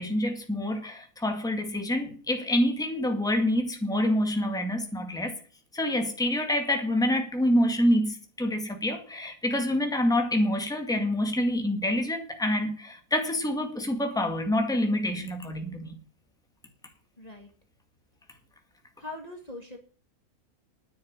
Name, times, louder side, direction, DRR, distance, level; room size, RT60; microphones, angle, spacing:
voice 1, 0.0-5.3 5.7-15.9, left 1 dB, ahead, 2.0 m, -27 dB
voice 2, 17.2-17.5 19.0-19.8, left 2 dB, 25° left, 1.9 m, -41 dB
10.5 x 7.2 x 8.7 m
omnidirectional pair, 1.6 m